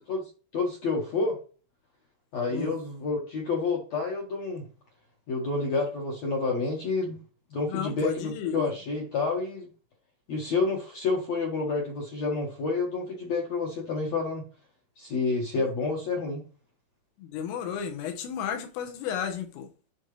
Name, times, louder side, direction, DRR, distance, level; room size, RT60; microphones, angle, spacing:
voice 1, 0.1-1.4 2.3-4.7 5.3-7.2 7.5-9.7 10.3-14.4 15.0-16.4, left 3 dB, 70° left, 1.6 m, -29 dB
voice 2, 7.7-8.7 17.2-19.7, left 8 dB, 90° left, 3.9 m, -33 dB
12.0 x 4.1 x 3.3 m
omnidirectional pair, 5.7 m